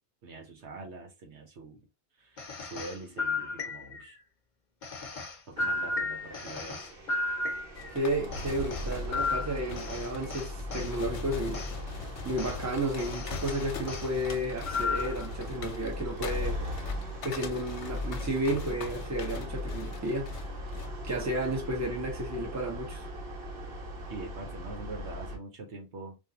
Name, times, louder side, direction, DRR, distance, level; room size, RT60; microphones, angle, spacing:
voice 1, 0.2-1.9 2.2-4.2 5.5-6.8 24.1-26.2, right 3 dB, 75° right, 1.2 m, -44 dB
sound 1, 2.4-4.1 4.8-8.0 8.3-10.9 11.5-11.7 12.4-12.6 13.0-14.1 14.6-15.3, left 3 dB, 45° left, 0.9 m, -34 dB
sound 2, 5.5-25.4, left 1 dB, 60° right, 1.1 m, -39 dB
sound 3, 7.7-20.9, left 7 dB, 80° left, 1.0 m, -43 dB
voice 2, 7.9-11.6 12.2-16.6 17.2-20.3 21.0-23.0, right 1 dB, 15° right, 0.9 m, -32 dB
3.5 x 2.6 x 2.8 m
omnidirectional pair, 1.2 m